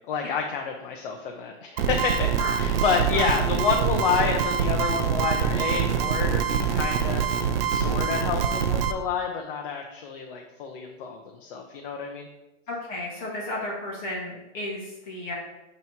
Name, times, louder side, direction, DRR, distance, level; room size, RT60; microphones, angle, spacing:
voice 1, 0.1-2.3 2.6-7.2 7.7-12.3, left 6 dB, 45° left, 2 dB, 0.7 m, -29 dB
sound 1, 1.8-8.9, right 7 dB, 50° right, 0.5 m, -25 dB
voice 2, 12.7-15.3, left 1 dB, 25° left, -4 dB, 1.2 m, -33 dB
9.1 x 3.1 x 4.4 m, 0.99 s
supercardioid pair, 170°, 37 cm